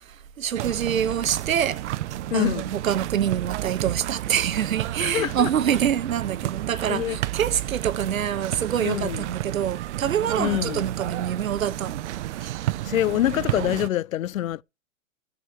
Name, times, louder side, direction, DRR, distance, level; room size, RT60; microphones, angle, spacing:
voice 1, 0.4-1.8 2.3-12.0, right 9 dB, 85° right, 1.3 m, -26 dB
sound 1, 0.5-13.9, right 15 dB, 60° right, 0.7 m, -31 dB
voice 2, 2.3-2.7 5.0-5.5 6.7-7.2 8.8-9.3 10.4-10.9 12.8-14.6, left 13 dB, 80° left, 0.6 m, -26 dB
16.0 x 6.2 x 3.0 m
hypercardioid pair, 125°, 40 cm